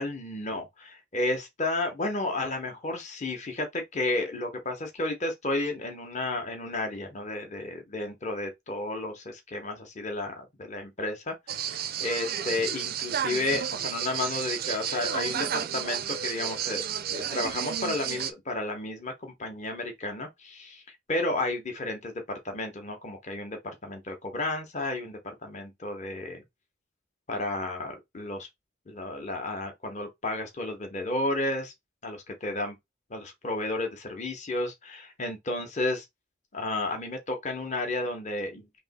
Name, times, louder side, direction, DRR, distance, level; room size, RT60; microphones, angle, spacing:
voice 1, 0.0-16.8 17.1-26.4 27.3-28.5 28.9-31.7 32.0-32.8 33.1-36.0 36.5-38.8, left 2 dB, 35° left, 0.9 m, -32 dB
sound 1, 11.5-18.3, right 9 dB, 50° right, 0.4 m, -32 dB
3.2 x 2.9 x 4.0 m
head